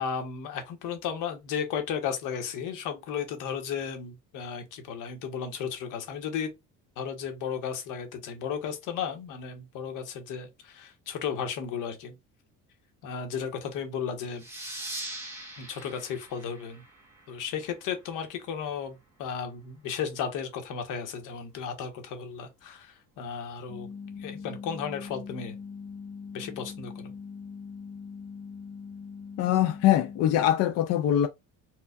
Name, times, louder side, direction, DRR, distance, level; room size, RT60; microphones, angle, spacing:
voice 1, 0.0-6.5 7.0-12.2 13.0-14.4 15.6-16.8 17.3-23.9 24.2-25.5 26.3-27.1, left 7 dB, 75° left, 1.2 m, -34 dB
sound 1, 14.4-17.6, right 1 dB, 10° right, 1.2 m, -41 dB
sound 2, 23.7-30.3, left 5 dB, 25° left, 0.9 m, -42 dB
voice 2, 29.4-31.3, left 11 dB, 55° left, 0.4 m, -23 dB
4.6 x 2.4 x 2.4 m
cardioid pair, 180°, 31 cm